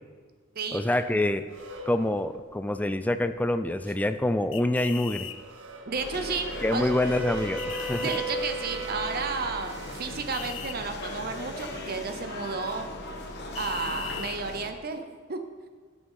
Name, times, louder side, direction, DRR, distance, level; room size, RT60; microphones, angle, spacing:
voice 1, 0.7-1.5 1.9-5.3 6.6-8.0, left 1 dB, 10° left, 10 dB, 0.3 m, -26 dB
sound 1, 0.8-1.1 1.5-2.4 3.2-3.3 5.1-11.0 13.0-14.2, right 1 dB, 80° right, 1.0 m, -38 dB
sound 2, 4.5-5.4 7.6-8.2 10.3-10.8 13.5-14.4, left 10 dB, 85° left, 0.5 m, -38 dB
sound 3, 5.9-14.7, left 2 dB, 60° left, 1.1 m, -39 dB
voice 2, 5.9-6.9 8.0-12.8 13.6-15.4, right 4 dB, 50° right, 7 dB, 0.7 m, -32 dB
9.7 x 6.3 x 5.4 m, 1.5 s
head